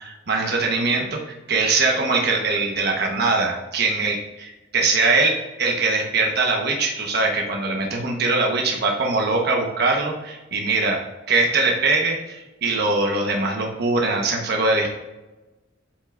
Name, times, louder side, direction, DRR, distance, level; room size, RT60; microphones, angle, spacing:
voice 1, 0.0-11.0 11.3-14.9, right 3 dB, 55° right, 0 dB, 1.1 m, -22 dB
8.5 x 5.4 x 2.5 m, 1.1 s
head